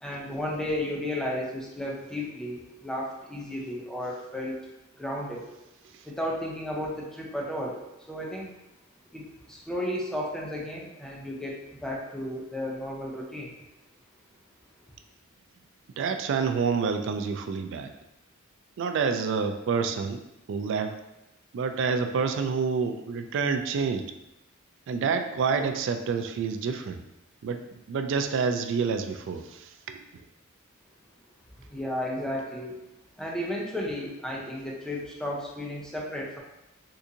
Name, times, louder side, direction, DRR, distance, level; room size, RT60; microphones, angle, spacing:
voice 1, 0.0-4.6 5.0-5.5 6.0-7.8 8.1-8.5 9.1-13.5 31.7-32.8 33.2-36.4, left 1 dB, 5° left, -3 dB, 0.5 m, -33 dB
voice 2, 16.0-17.9 18.8-20.2 20.5-21.0 21.5-24.1 24.9-27.0 27.4-27.6 27.9-30.2, right 5 dB, 60° right, 7 dB, 0.3 m, -28 dB
3.7 x 2.5 x 2.7 m, 0.92 s
head